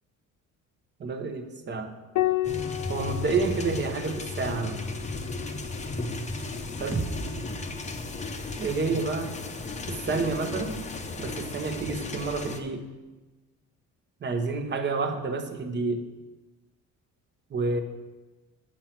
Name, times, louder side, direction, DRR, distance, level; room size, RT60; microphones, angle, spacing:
voice 1, 1.0-1.9 2.9-5.0 6.8-7.1 8.6-9.4 9.9-10.8 11.2-12.9 14.2-16.1 17.5-17.8, right 4 dB, 35° right, 5 dB, 1.0 m, -29 dB
Piano, 2.2-7.0 8.6-9.5, left 15 dB, 65° left, 0.7 m, -34 dB
sound 1, 2.4-12.6, left 3 dB, 20° left, 0.7 m, -35 dB
sound 2, 6.9-10.8, right 3 dB, 10° right, 0.6 m, -39 dB
8.6 x 7.4 x 6.0 m, 1.2 s
cardioid pair, 145°, 31 cm